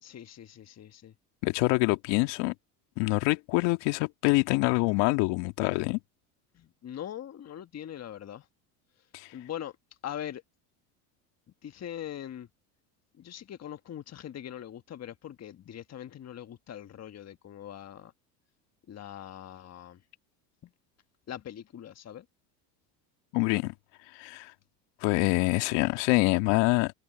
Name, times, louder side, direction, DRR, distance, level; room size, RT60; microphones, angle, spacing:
voice 1, 0.0-1.1 6.5-8.4 9.3-9.7 10.0-10.4 11.6-12.5 13.2-18.1 18.9-20.0 21.3-22.2, left 10 dB, 35° left, 1.5 m, -41 dB
voice 2, 1.4-2.5 3.0-6.0 9.1-9.3 23.3-23.7 24.1-24.5 25.0-26.9, left 25 dB, 65° left, 1.8 m, -25 dB
hypercardioid pair, 85°, 46 cm